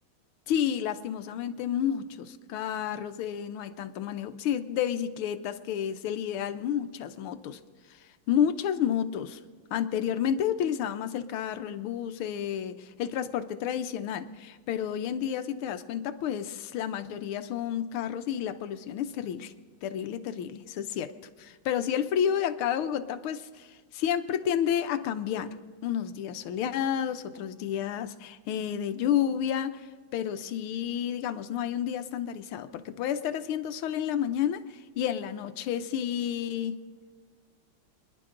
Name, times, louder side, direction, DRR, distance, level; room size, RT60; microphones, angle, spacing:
voice 1, 0.5-7.6 8.3-9.4 9.7-19.5 19.8-21.1 21.4-25.5 25.8-29.9 30.1-36.8, left 9 dB, 85° left, 10 dB, 1.7 m, -30 dB
28.5 x 11.0 x 3.8 m, 1.5 s
omnidirectional pair, 2.3 m